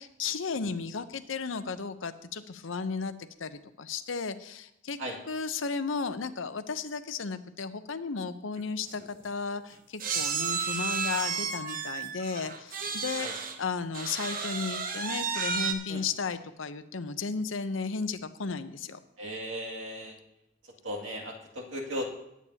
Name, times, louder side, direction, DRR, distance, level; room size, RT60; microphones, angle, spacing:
voice 1, 0.0-5.0 5.3-13.3 13.6-19.0, left 5 dB, 80° left, 11 dB, 0.7 m, -34 dB
sound 1, 8.6-8.7 8.9-9.1 10.0-13.6 13.9-15.7, right 6 dB, 45° right, 1.1 m, -32 dB
voice 2, 19.2-20.2 20.6-22.0, equal, 80° right, -2 dB, 2.4 m, -37 dB
19.0 x 8.5 x 2.8 m, 0.84 s
head